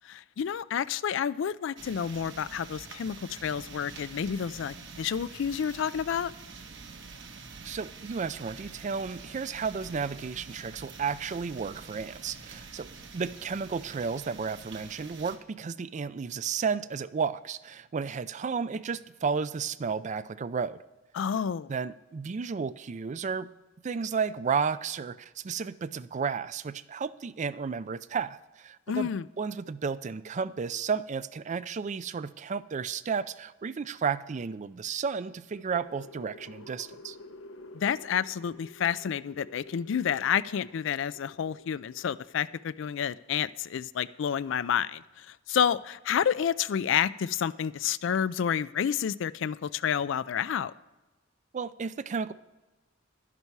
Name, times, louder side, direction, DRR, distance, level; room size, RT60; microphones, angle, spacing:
voice 1, 0.0-6.3 21.1-21.7 28.9-29.2 37.7-50.7, left 8 dB, 70° left, 17 dB, 0.4 m, -29 dB
sound 1, 1.8-15.4, right 4 dB, 70° right, 1.3 m, -46 dB
voice 2, 7.6-20.8 21.7-23.5 23.8-29.1 29.4-37.2 51.5-52.3, right 5 dB, 40° right, 16 dB, 0.4 m, -33 dB
sound 2, 35.5-42.7, left 2 dB, 85° left, 0.9 m, -51 dB
11.5 x 11.0 x 4.6 m, 1.1 s
head